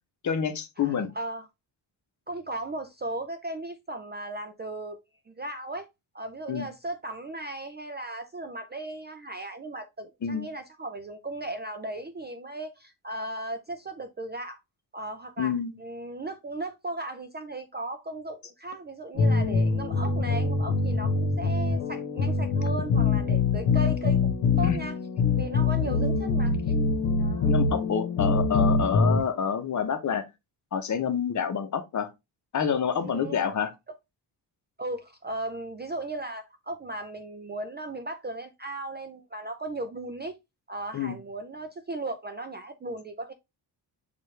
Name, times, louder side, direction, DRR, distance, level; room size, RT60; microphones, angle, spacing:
voice 1, 0.2-1.1 6.5-6.7 10.2-10.5 15.4-15.7 24.6-24.8 25.8-26.3 27.5-30.2 30.7-32.1 32.5-33.7 40.9-41.2, left 7 dB, 40° left, 0.8 m, -28 dB
voice 2, 0.8-1.5 2.3-5.0 5.3-5.9 6.1-14.6 14.9-15.5 15.8-25.0 25.3-26.6 27.2-27.5 33.0-33.5 34.8-40.4 40.7-43.3, right 2 dB, 25° right, 0.3 m, -36 dB
sound 1, 19.2-29.2, left 4 dB, 85° left, 1.2 m, -24 dB
6.6 x 2.5 x 3.2 m
wide cardioid pair, 150°, 44 cm